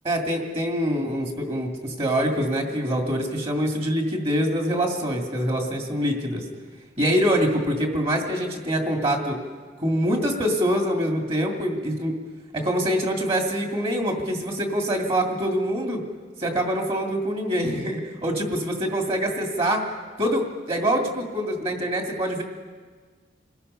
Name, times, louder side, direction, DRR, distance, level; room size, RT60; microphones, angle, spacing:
voice 1, 0.0-6.4 7.0-9.4 9.8-12.2 12.5-16.0 16.4-19.8 20.2-22.4, equal, 35° right, 1 dB, 2.4 m, -25 dB
28.5 x 19.5 x 5.6 m, 1.5 s
head